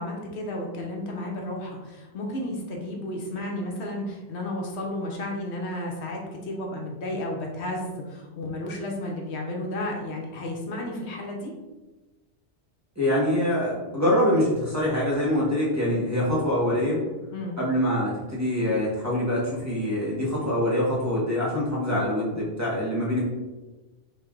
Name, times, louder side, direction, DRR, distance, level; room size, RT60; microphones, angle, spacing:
voice 1, 0.0-11.5 17.3-17.6, left 1 dB, 75° left, 0 dB, 0.9 m, -32 dB
voice 2, 13.0-17.0 17.6-23.2, left 1 dB, 15° right, -7 dB, 0.9 m, -24 dB
3.2 x 2.5 x 3.6 m, 1.2 s
omnidirectional pair, 1.2 m